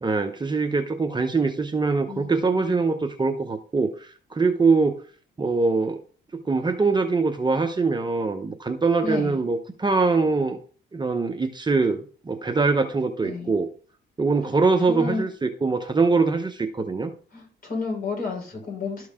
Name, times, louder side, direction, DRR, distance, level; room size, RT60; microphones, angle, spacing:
voice 1, 0.0-5.0 5.4-6.0 6.4-10.6 10.9-13.7 14.2-17.1, right 4 dB, 20° right, 6 dB, 0.8 m, -23 dB
voice 2, 2.1-2.8 9.0-9.4 13.2-13.5 14.4-14.5 14.9-15.2 17.3-19.1, left 4 dB, 45° left, 0 dB, 5.0 m, -31 dB
12.5 x 4.7 x 3.6 m, 0.42 s
cardioid pair, 90°, 20 cm